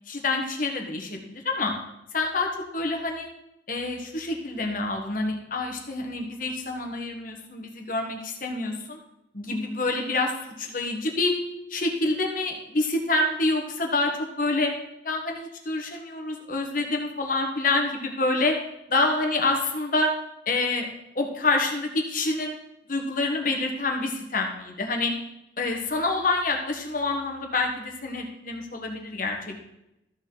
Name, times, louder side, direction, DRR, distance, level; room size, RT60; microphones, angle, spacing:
voice 1, 0.1-1.7 2.1-3.3 3.7-9.0 9.3-11.4 11.7-14.1 14.4-14.7 15.0-18.6 18.9-20.1 20.5-20.9 21.1-22.5 22.9-25.1 25.6-29.6, left 2 dB, 45° left, 2 dB, 1.4 m, -27 dB
13.5 x 7.2 x 3.9 m, 0.85 s
head